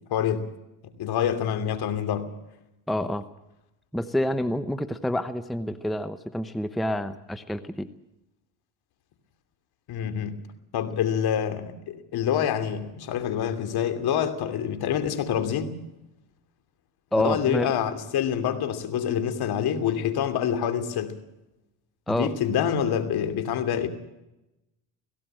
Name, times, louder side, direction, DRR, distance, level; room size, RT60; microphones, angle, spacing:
voice 1, 0.1-0.5 1.0-2.3 9.9-10.4 10.7-15.7 17.1-21.2 22.1-23.9, left 9 dB, 55° left, 2.8 m, -26 dB
voice 2, 2.9-3.3 3.9-7.9 17.1-17.7 22.1-22.3, left 1 dB, ahead, 0.8 m, -28 dB
17.5 x 16.5 x 9.0 m
supercardioid pair, 95°, 46 cm